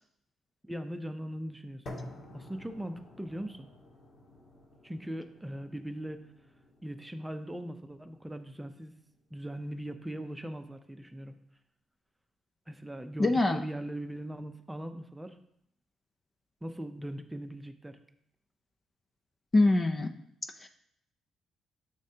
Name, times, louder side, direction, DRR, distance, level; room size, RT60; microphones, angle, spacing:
voice 1, 0.6-2.0 2.3-3.7 4.8-6.2 6.8-8.9 9.3-11.3 12.7-15.4 16.6-18.0, right 1 dB, 10° right, 7 dB, 0.7 m, -40 dB
sound 1, 1.9-9.9, left 1 dB, 50° left, 1.8 m, -51 dB
voice 2, 13.2-13.6 19.5-20.1 20.6-20.7, left 2 dB, 30° left, 7 dB, 0.6 m, -24 dB
9.4 x 6.6 x 2.9 m, 0.73 s
cardioid pair, 90°, 0 cm